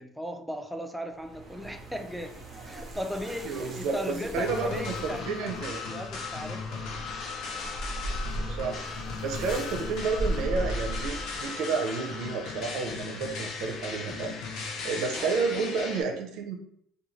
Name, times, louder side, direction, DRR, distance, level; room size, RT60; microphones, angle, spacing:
voice 1, 0.0-2.3 2.7-6.9 15.2-15.3, equal, 5° right, 5 dB, 0.3 m, -37 dB
sound 1, 1.1-11.5, right 1 dB, 25° right, 0.8 m, -38 dB
voice 2, 3.4-5.0 5.3-5.8 8.5-8.8 9.2-14.4 14.8-16.6, right 4 dB, 75° right, 3 dB, 0.5 m, -31 dB
sound 2, 4.3-16.0, left 4 dB, 70° left, 0.6 m, -37 dB
2.5 x 2.3 x 3.1 m, 0.70 s
cardioid pair, 110°, 0 cm